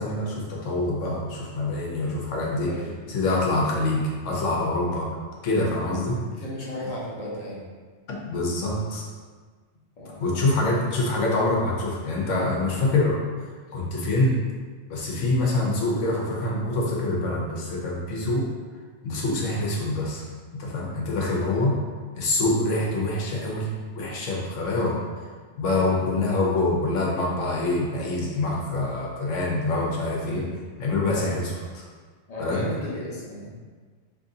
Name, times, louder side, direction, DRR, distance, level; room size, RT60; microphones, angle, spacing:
voice 1, 0.0-2.7 3.1-5.1 5.4-6.2 8.1-9.0 10.2-13.2 13.7-14.4 14.9-18.5 19.0-20.2 20.5-21.8 22.1-23.7 24.0-25.0 25.6-30.5 30.8-31.8 32.4-32.6, left 2 dB, 80° left, -2 dB, 1.1 m, -25 dB
voice 2, 2.7-3.2 6.3-7.7 10.0-10.5 21.4-21.7 25.7-26.0 31.1-31.3 32.3-33.5, left 1 dB, 35° left, -5 dB, 0.7 m, -35 dB
3.0 x 2.6 x 3.8 m, 1.5 s
omnidirectional pair, 1.3 m